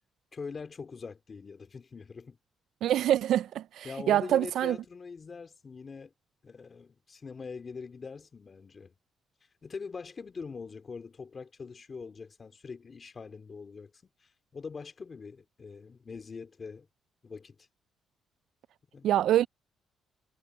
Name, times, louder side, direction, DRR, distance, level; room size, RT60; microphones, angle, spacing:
voice 1, 0.3-2.4 3.8-6.1 6.4-8.9 9.6-13.9 14.2-16.9 17.2-17.7 18.9-19.2, left 5 dB, 40° left, 2.5 m, -43 dB
voice 2, 2.8-4.8 19.0-19.5, right 12 dB, 75° right, 0.4 m, -25 dB
cardioid pair, 90°, 0 cm